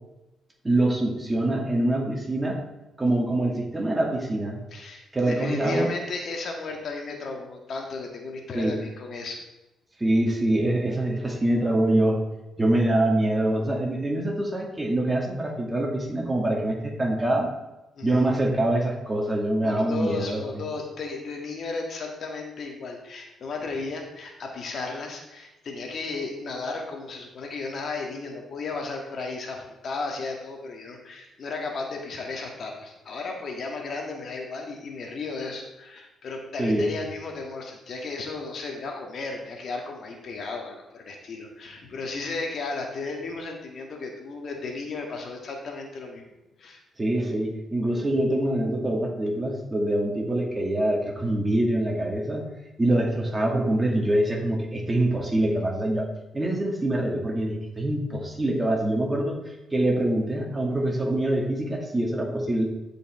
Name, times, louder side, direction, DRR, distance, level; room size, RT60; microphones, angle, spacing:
voice 1, 0.6-2.6 3.0-4.6 5.1-5.9 8.5-8.8 10.0-12.2 12.6-17.5 18.0-20.4 36.6-36.8 47.0-52.4 52.8-56.1 56.3-62.7, right 1 dB, 15° right, 0 dB, 2.1 m, -24 dB
voice 2, 4.7-9.4 18.0-18.3 19.6-46.2 46.6-46.8, left 3 dB, 55° left, 2 dB, 1.7 m, -34 dB
13.5 x 5.2 x 3.6 m, 0.99 s
cardioid pair, 90°, 0 cm